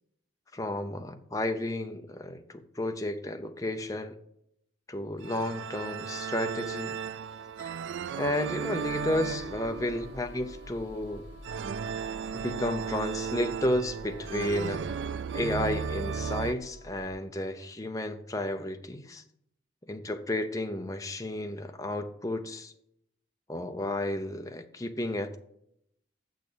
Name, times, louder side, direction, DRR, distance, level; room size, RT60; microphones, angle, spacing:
voice 1, 0.5-4.2 4.9-7.0 7.6-7.7 8.2-11.2 12.3-14.8 15.3-19.2 19.9-22.7 23.5-25.4, left 1 dB, 20° left, 0.7 m, -32 dB
sound 1, 5.2-16.5, right 6 dB, 70° right, 0.3 m, -35 dB
sound 2, 8.7-17.1, equal, 50° left, 2.2 m, -48 dB
7.1 x 6.4 x 6.8 m
head